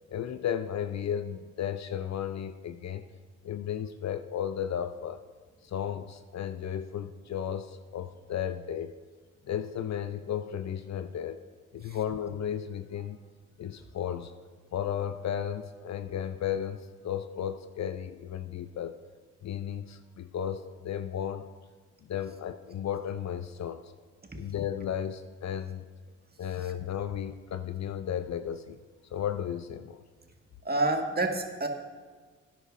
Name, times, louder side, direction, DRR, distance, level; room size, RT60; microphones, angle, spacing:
voice 1, 0.1-3.0 3.4-5.2 5.6-8.9 9.5-11.4 11.7-13.2 13.6-14.3 14.7-19.0 19.4-21.6 22.1-23.9 24.3-25.9 26.4-28.8 29.1-30.0, left 9 dB, 45° left, 11 dB, 0.6 m, -34 dB
voice 2, 30.6-31.7, right 2 dB, 25° right, 3 dB, 1.8 m, -28 dB
17.5 x 9.9 x 2.6 m, 1.4 s
hypercardioid pair, 40°, 37 cm